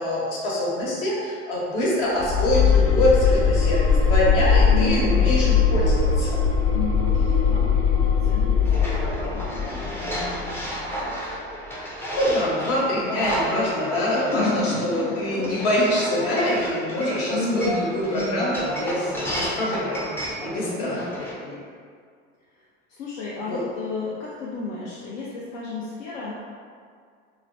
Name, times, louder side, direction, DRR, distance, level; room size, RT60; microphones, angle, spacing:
voice 1, 0.0-6.4 11.8-21.0 21.4-21.5 23.5-23.6, left 1 dB, 70° left, -5 dB, 1.0 m, -25 dB
sound 1, 2.2-11.1, left 5 dB, 40° left, 0.6 m, -20 dB
voice 2, 4.6-5.4 6.6-11.2 14.1-15.7 17.3-18.5 20.5-21.2 22.5-26.3, left 3 dB, 85° left, -6 dB, 0.5 m, -32 dB
sound 2, 8.6-21.3, equal, 5° left, 0.3 m, -31 dB
3.0 x 2.0 x 2.5 m, 2.1 s
hypercardioid pair, 85°, 36 cm